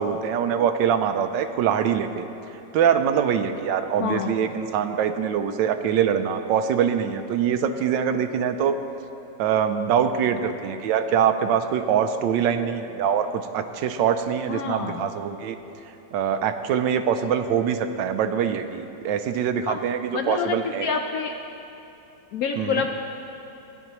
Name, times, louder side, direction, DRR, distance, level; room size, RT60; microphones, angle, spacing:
voice 1, 0.0-2.3 2.7-8.8 9.4-13.3 13.5-15.6 16.1-20.9 22.6-22.8, right 8 dB, 90° right, 8 dB, 1.3 m, -23 dB
voice 2, 4.0-4.3 14.5-15.0 19.7-19.8 20.1-21.4 22.3-22.9, left 6 dB, 75° left, 4 dB, 0.8 m, -27 dB
16.0 x 10.0 x 3.0 m, 2.9 s
omnidirectional pair, 1.9 m